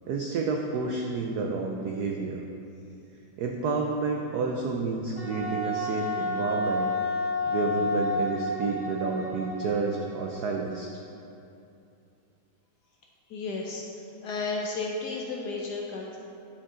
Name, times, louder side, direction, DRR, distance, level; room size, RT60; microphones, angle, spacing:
voice 1, 0.1-2.4 3.4-6.9 7.5-10.9, right 4 dB, 85° right, 1 dB, 0.8 m, -30 dB
Wind instrument woodwind instrument, 5.2-10.6, left 1 dB, 30° left, 2.3 m, -30 dB
voice 2, 13.3-13.8 14.2-16.2, left 3 dB, 70° left, -1 dB, 1.0 m, -33 dB
10.5 x 5.1 x 3.7 m, 2.7 s
omnidirectional pair, 2.4 m